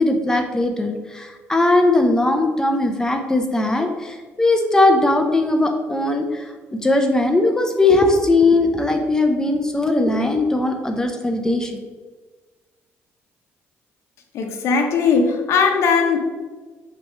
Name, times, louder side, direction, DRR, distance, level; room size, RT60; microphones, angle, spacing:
voice 1, 0.0-11.7, left 2 dB, 10° left, 4 dB, 0.6 m, -19 dB
voice 2, 14.3-16.2, left 5 dB, 65° left, 3 dB, 0.9 m, -18 dB
6.6 x 3.1 x 5.4 m, 1.3 s
cardioid pair, 135°, 5 cm